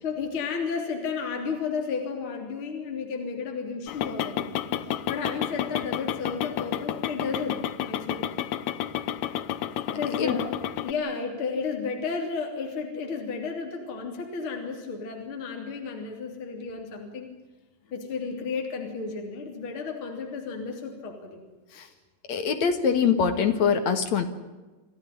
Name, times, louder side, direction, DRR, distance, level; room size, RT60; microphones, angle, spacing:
voice 1, 0.0-4.5 4.8-8.3 9.9-17.3 17.9-21.4 21.7-21.9, left 5 dB, 35° left, 2 dB, 3.6 m, -33 dB
sound 1, 3.9-10.9, left 10 dB, 80° left, 1.7 m, -31 dB
voice 2, 22.3-24.2, left 6 dB, 55° left, 7 dB, 2.5 m, -23 dB
27.5 x 15.0 x 10.0 m, 1.2 s
omnidirectional pair, 4.6 m